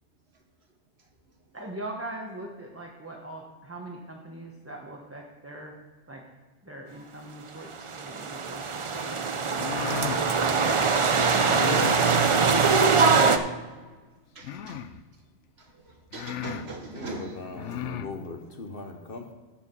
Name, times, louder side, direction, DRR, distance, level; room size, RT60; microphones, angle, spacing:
voice 1, 1.5-5.7 6.1-6.2 6.6-8.6 8.9-9.2, right 1 dB, 10° right, -1 dB, 1.1 m, -41 dB
sound 1, 7.9-13.4, right 5 dB, 40° right, 0.4 m, -22 dB
sound 2, 9.5-10.2 11.5-12.0 12.8-13.4 14.4-15.0 15.7-15.8 16.1-16.7 17.5-18.1, left 9 dB, 80° left, 0.9 m, -35 dB
voice 2, 14.3-14.8 15.6-17.9, right 2 dB, 60° right, 2 dB, 1.7 m, -41 dB
voice 3, 16.7-19.3, left 3 dB, 50° left, 5 dB, 1.1 m, -39 dB
14.5 x 4.9 x 5.5 m, 1.4 s
omnidirectional pair, 1.2 m